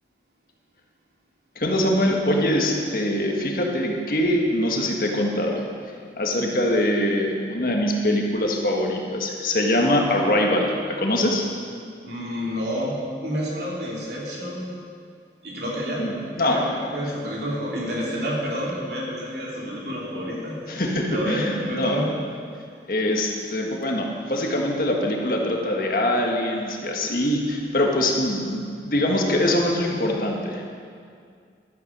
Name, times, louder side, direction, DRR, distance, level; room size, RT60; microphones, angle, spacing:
voice 1, 1.5-5.7 6.2-11.4 16.0-16.6 20.7-22.0 22.9-30.7, left 1 dB, 50° left, 0 dB, 1.6 m, -23 dB
voice 2, 12.0-14.8 15.4-20.8 21.1-22.2, equal, 70° right, -4 dB, 2.9 m, -29 dB
12.5 x 9.4 x 6.0 m, 2.2 s
head